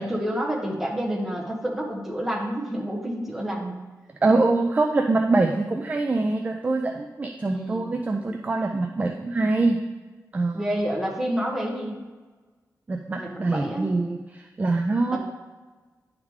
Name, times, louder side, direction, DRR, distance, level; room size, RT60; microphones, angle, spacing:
voice 1, 0.0-3.7 7.5-7.9 10.5-12.0 13.2-13.9 15.1-15.2, equal, 5° right, -3 dB, 1.3 m, -29 dB
voice 2, 4.2-9.8 10.3-10.6 12.9-15.2, right 3 dB, 25° right, 4 dB, 0.4 m, -24 dB
10.0 x 3.6 x 4.7 m, 1.3 s
wide cardioid pair, 160°, 6 cm